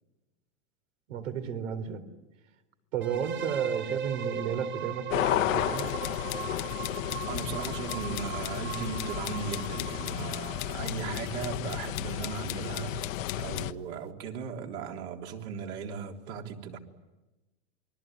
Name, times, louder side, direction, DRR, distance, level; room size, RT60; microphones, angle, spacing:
voice 1, 1.1-2.0 2.9-5.9, right 8 dB, 85° right, 4.0 m, -33 dB
sound 1, 3.0-10.8, right 8 dB, 30° right, 1.2 m, -38 dB
sound 2, 5.1-13.7, left 13 dB, 85° left, 1.2 m, -33 dB
sound 3, 5.8-13.7, left 22 dB, 60° left, 0.9 m, -41 dB
voice 2, 7.3-16.8, right 6 dB, 60° right, 3.6 m, -37 dB
28.0 x 22.0 x 9.2 m
supercardioid pair, 140°, 38 cm